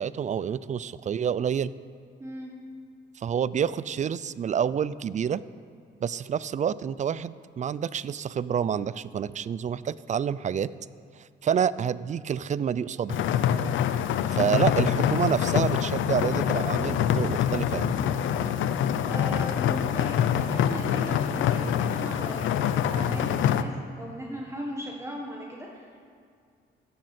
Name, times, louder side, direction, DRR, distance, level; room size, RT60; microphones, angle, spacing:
voice 1, 0.0-1.7 3.2-5.4 6.0-10.7 11.2-13.3 14.3-17.9, right 8 dB, 40° right, 18 dB, 0.4 m, -28 dB
voice 2, 2.2-2.5 19.0-26.1, equal, 15° right, -2 dB, 1.5 m, -38 dB
sound 1, 13.1-23.6, left 9 dB, 75° left, 0.6 m, -25 dB
14.0 x 10.5 x 4.3 m, 2.2 s
cardioid pair, 90°, 20 cm